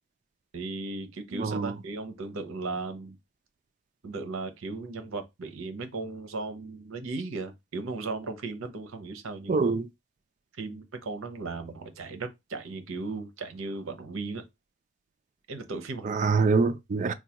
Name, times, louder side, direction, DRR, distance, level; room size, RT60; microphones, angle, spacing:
voice 1, 0.5-3.2 4.0-9.7 10.6-14.4 15.5-16.2, right 3 dB, 65° right, 0.7 m, -36 dB
voice 2, 1.3-1.8 9.5-9.9 16.0-17.1, right 4 dB, 35° right, 0.3 m, -25 dB
4.5 x 2.2 x 2.9 m
head